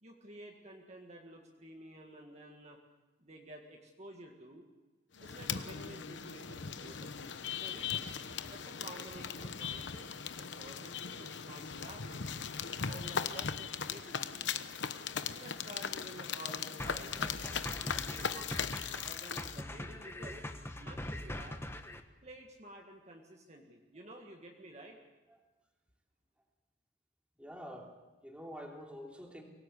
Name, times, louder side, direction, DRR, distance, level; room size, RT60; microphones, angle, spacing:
voice 1, 0.0-2.8 3.2-4.6 5.2-8.1 8.5-10.1 10.4-12.5 12.7-14.5 15.2-20.5 20.8-21.6 22.2-25.0, right 1 dB, 35° right, 1 dB, 1.9 m, -52 dB
Rain car steps, 5.2-19.6, left 7 dB, 75° left, 1.0 m, -39 dB
sound 1, 16.8-22.0, left 1 dB, 15° left, 1.2 m, -42 dB
voice 2, 27.4-29.4, equal, 5° right, 1 dB, 3.1 m, -47 dB
24.0 x 17.5 x 8.4 m, 1.1 s
head